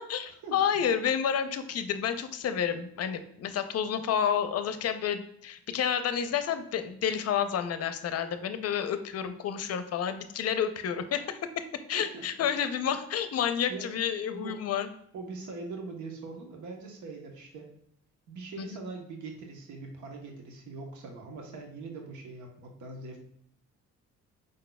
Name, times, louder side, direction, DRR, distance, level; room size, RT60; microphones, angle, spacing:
voice 1, 0.0-11.6 11.9-14.9 18.6-18.8, left 8 dB, 55° left, 10 dB, 0.6 m, -30 dB
voice 2, 11.9-12.3 13.7-13.9 14.3-14.6 15.1-17.7 18.3-23.2, right 3 dB, 75° right, 2 dB, 1.0 m, -42 dB
5.2 x 3.9 x 2.2 m, 0.69 s
cardioid pair, 90°, 30 cm